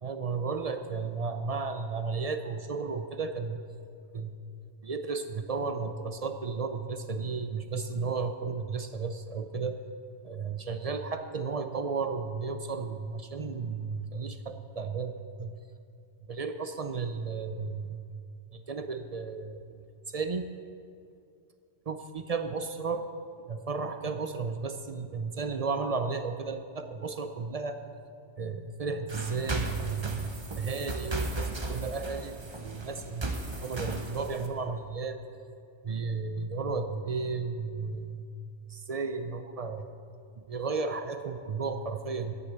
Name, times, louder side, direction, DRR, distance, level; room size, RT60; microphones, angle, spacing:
voice 1, 0.0-3.6 4.1-4.4 4.8-9.8 10.2-15.5 16.3-18.0 18.5-20.5 21.9-23.1 23.4-27.8 28.4-33.3 33.6-35.2 35.8-38.3 38.7-39.9 40.4-42.3, right 4 dB, 50° right, 8 dB, 0.5 m, -34 dB
sound 1, 29.1-34.5, right 2 dB, 25° right, 0.9 m, -36 dB
10.5 x 8.4 x 8.0 m, 2.4 s
omnidirectional pair, 1.2 m